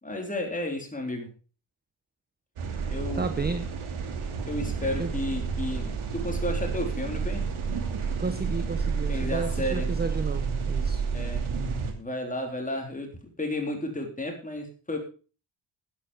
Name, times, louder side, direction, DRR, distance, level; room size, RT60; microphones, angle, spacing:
voice 1, 0.0-1.3 2.9-3.5 4.4-7.4 9.1-9.9 11.1-11.4 12.0-15.0, left 1 dB, 15° left, 2 dB, 3.7 m, -32 dB
sound 1, 2.6-11.9, right 5 dB, 85° right, 2.9 m, -30 dB
voice 2, 3.2-3.6 5.0-5.1 8.2-11.0, right 4 dB, 20° right, 10 dB, 0.8 m, -32 dB
11.5 x 11.0 x 5.0 m, 0.36 s
wide cardioid pair, 155°, 48 cm